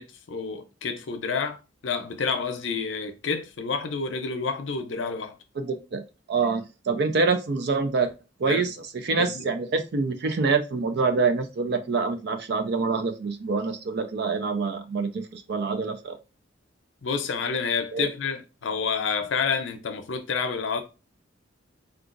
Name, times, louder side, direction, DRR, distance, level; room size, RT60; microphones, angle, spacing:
voice 1, 0.0-1.6 1.8-5.4 8.5-8.7 9.2-9.5 17.0-20.8, left 5 dB, 85° left, 0.6 m, -29 dB
voice 2, 5.6-6.0 6.3-8.1 8.4-16.1 17.9-18.1, right 4 dB, 60° right, 0.4 m, -26 dB
3.8 x 2.3 x 2.5 m
head